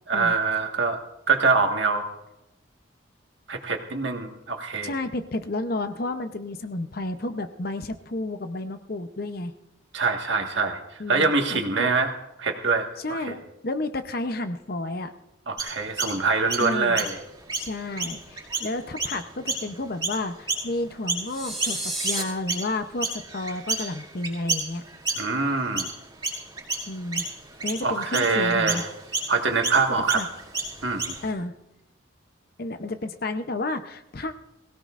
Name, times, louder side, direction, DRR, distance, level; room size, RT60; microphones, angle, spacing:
voice 1, 0.1-1.0 1.3-2.1 3.5-4.9 9.9-10.8 11.1-12.1 12.4-13.3 15.5-17.1 25.2-25.9 27.8-28.8 29.3-30.2 30.8-31.1, right 4 dB, 70° right, 3 dB, 1.7 m, -24 dB
voice 2, 4.8-9.5 11.0-11.9 13.0-15.1 16.6-17.1 17.5-24.8 26.9-27.2 27.6-28.8 30.1-30.3 31.2-31.5 32.6-34.4, left 2 dB, 50° left, 9 dB, 0.7 m, -31 dB
Chirp tweet, 15.6-21.3 21.6-31.3, right 3 dB, 25° right, 4.6 m, -31 dB
sound 1, 21.3-22.2, right 2 dB, ahead, 2.4 m, -31 dB
21.5 x 17.0 x 2.5 m, 0.90 s
head